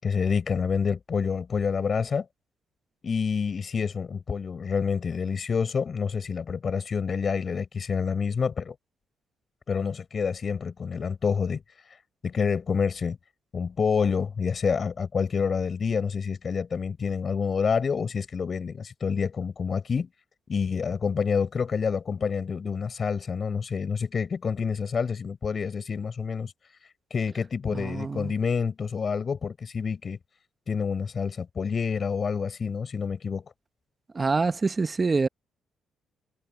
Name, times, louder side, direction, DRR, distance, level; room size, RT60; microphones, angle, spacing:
voice 1, 0.0-2.3 3.0-8.7 9.7-11.6 11.9-12.0 12.2-13.2 13.5-20.1 20.5-26.5 27.1-30.2 30.7-33.4, left 6 dB, 45° left, 6.0 m, -28 dB
voice 2, 27.7-28.3 34.1-35.3, right 4 dB, 30° right, 0.9 m, -26 dB
cardioid pair, 90°, 0 cm